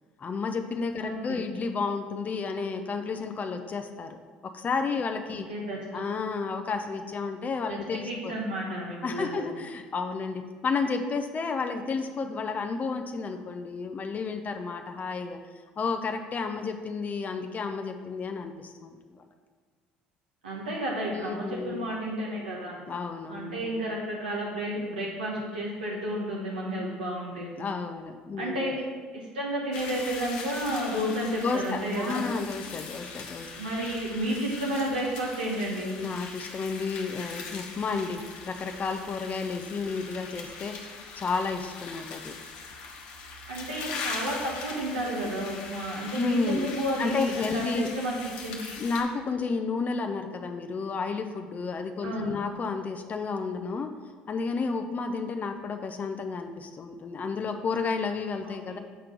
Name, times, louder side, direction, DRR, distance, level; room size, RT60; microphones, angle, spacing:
voice 1, 0.2-4.2 4.4-5.5 5.9-8.3 9.0-15.4 15.8-19.3 21.1-21.9 22.9-23.7 27.6-28.7 31.4-33.5 36.0-40.8 41.2-42.4 46.1-46.7 47.0-47.9 48.8-53.9 54.3-58.8, left 4 dB, 35° left, 6 dB, 0.6 m, -31 dB
voice 2, 1.0-1.4 5.5-6.0 7.7-9.4 20.4-22.8 23.3-27.5 28.4-28.8 29.1-32.3 33.6-36.0 43.5-48.7 52.0-52.4 58.4-58.8, right 1 dB, 90° right, -4 dB, 1.1 m, -32 dB
sound 1, 29.7-49.0, left 4 dB, 70° left, 1.1 m, -41 dB
7.4 x 4.4 x 5.1 m, 1.5 s
hypercardioid pair, 65°, 5 cm